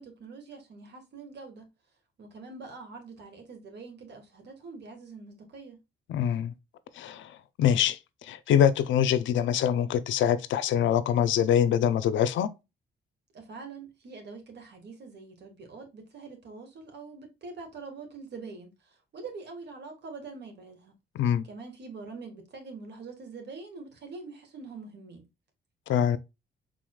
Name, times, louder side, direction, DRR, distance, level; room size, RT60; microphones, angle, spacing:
voice 1, 0.0-1.7 2.2-5.8 13.3-20.9 21.4-25.2, right 4 dB, 60° right, 1.7 m, -44 dB
voice 2, 6.1-6.5 7.0-7.3 7.6-12.5 21.1-21.5 25.9-26.2, left 9 dB, 75° left, 0.5 m, -24 dB
4.8 x 3.8 x 2.3 m
cardioid pair, 90°, 20 cm